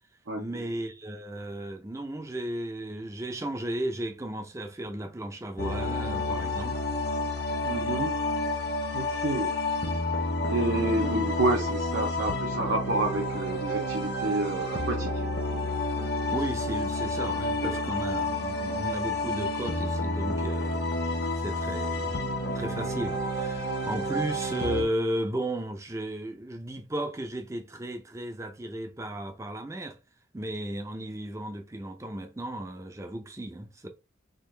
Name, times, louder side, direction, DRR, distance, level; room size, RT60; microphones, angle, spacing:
voice 1, 0.4-6.8 16.3-20.9 21.4-22.3 22.5-30.0 30.3-33.9, right 1 dB, 15° right, 0.5 m, -34 dB
sound 1, 5.6-24.8, left 1 dB, 55° left, 0.8 m, -30 dB
voice 2, 7.6-8.2 8.9-9.5 10.5-15.1, right 2 dB, 65° right, 0.7 m, -29 dB
3.8 x 2.5 x 3.2 m
head